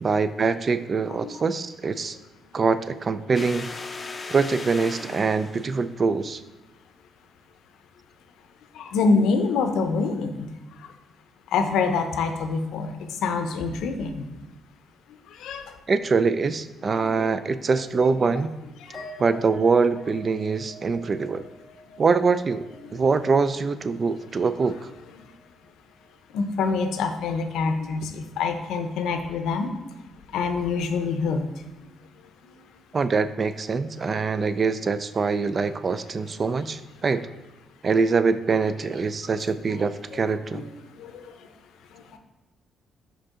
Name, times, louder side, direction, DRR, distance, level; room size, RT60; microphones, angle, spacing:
voice 1, 0.0-2.2 2.5-3.7 4.3-6.4 15.9-18.5 19.2-21.4 22.0-22.6 22.9-24.9 32.9-37.3 37.8-40.7, right 4 dB, 40° right, 12 dB, 0.3 m, -24 dB
sound 1, 3.3-5.9, left 3 dB, 30° left, 0.5 m, -37 dB
voice 2, 8.7-10.5 10.8-10.9 11.5-14.3 15.3-15.7 18.8-19.1 22.8-23.0 25.1-25.2 26.3-29.7 30.3-31.4 32.4-32.5 39.8-40.7 40.9-41.5 41.9-42.2, left 4 dB, 85° left, 7 dB, 0.5 m, -26 dB
sound 2, 18.9-25.6 25.9-26.5, right 1 dB, 15° right, 1.8 m, -46 dB
5.1 x 5.1 x 3.6 m, 1.0 s
cardioid pair, 90°, 0 cm